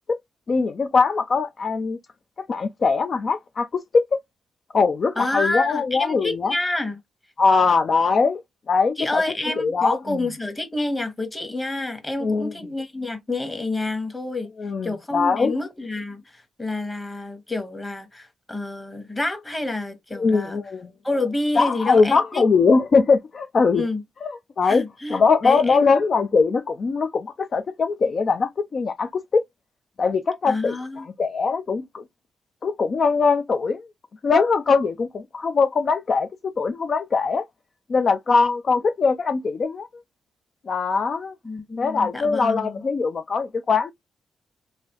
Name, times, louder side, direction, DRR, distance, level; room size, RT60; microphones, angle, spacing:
voice 1, 0.5-2.0 2.5-4.2 4.7-6.5 7.4-8.4 8.7-9.2 9.6-10.2 12.2-12.5 14.6-15.5 20.2-20.9 21.6-23.8 24.2-24.3 24.6-24.8 25.1-29.4 30.0-32.0 32.6-33.8 34.2-37.5 37.9-39.9 40.7-41.3 41.8-43.9, left 4 dB, 50° left, 0.4 m, -21 dB
voice 2, 5.2-7.0 9.0-14.5 14.8-20.6 21.0-22.4 23.8-24.0 24.6-25.8 30.5-31.0 41.4-42.8, left 2 dB, 20° left, 1.3 m, -28 dB
3.2 x 2.6 x 3.0 m
cardioid pair, 70°, 0 cm